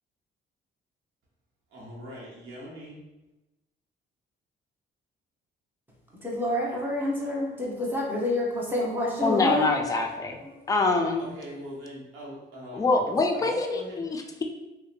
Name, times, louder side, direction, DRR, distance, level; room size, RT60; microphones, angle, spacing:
voice 1, 1.7-3.0 11.2-14.1, equal, 85° right, -5 dB, 1.0 m, -42 dB
voice 2, 6.2-9.7 10.5-10.6, left 1 dB, 10° right, -4 dB, 0.8 m, -28 dB
voice 3, 9.2-10.4 10.7-11.3 12.7-14.4, left 3 dB, 15° left, 3 dB, 0.3 m, -25 dB
2.8 x 2.2 x 2.5 m, 1.0 s
cardioid pair, 90°, 20 cm